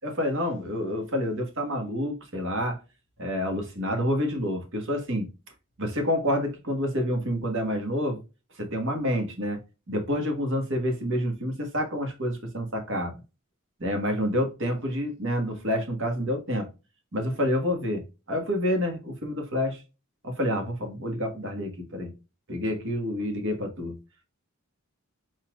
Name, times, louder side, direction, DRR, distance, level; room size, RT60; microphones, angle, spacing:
voice 1, 0.0-2.8 3.2-5.3 5.8-8.2 8.6-9.6 9.9-13.1 13.8-16.7 17.1-19.8 20.2-22.1 22.5-24.0, equal, 60° right, 1.6 m, -28 dB
4.6 x 4.2 x 2.4 m
head